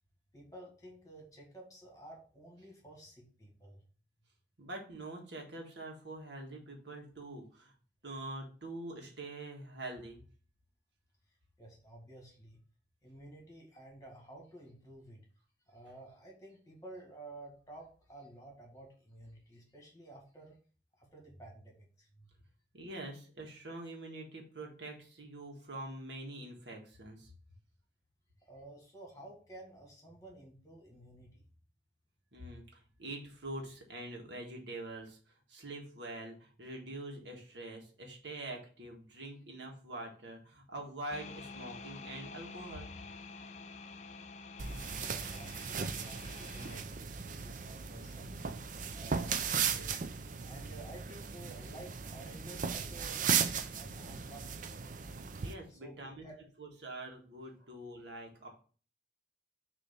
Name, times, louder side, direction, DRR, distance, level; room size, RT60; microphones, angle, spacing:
voice 1, 0.3-3.8 11.6-12.6 13.0-15.3 15.7-20.6 21.0-22.3 28.4-31.4 45.0-48.6 48.9-50.0 50.4-56.4 57.6-57.7, right 1 dB, 20° left, -1 dB, 1.9 m, -52 dB
voice 2, 4.6-7.7 8.0-10.2 22.7-27.3 32.3-42.9 55.4-56.3 56.6-58.5, right 2 dB, 70° right, 0 dB, 1.6 m, -45 dB
sound 1, 41.1-46.8, left 4 dB, 40° left, 0.4 m, -48 dB
sound 2, 44.6-55.5, right 6 dB, 45° right, 0.5 m, -36 dB
6.7 x 3.0 x 5.6 m, 0.40 s
head